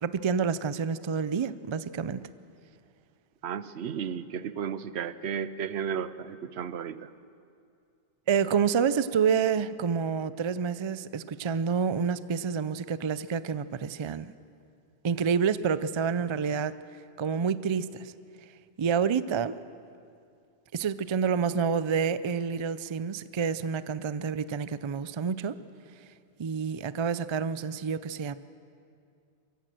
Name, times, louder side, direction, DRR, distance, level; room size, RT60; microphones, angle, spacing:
voice 1, 0.0-2.2 8.3-14.3 15.0-16.7 17.2-18.1 18.8-19.6 20.7-25.6 26.4-28.3, right 6 dB, 50° right, 15 dB, 0.3 m, -28 dB
voice 2, 3.4-7.1, right 7 dB, 70° right, 15 dB, 0.9 m, -34 dB
23.5 x 15.0 x 7.7 m, 2.4 s
omnidirectional pair, 1.2 m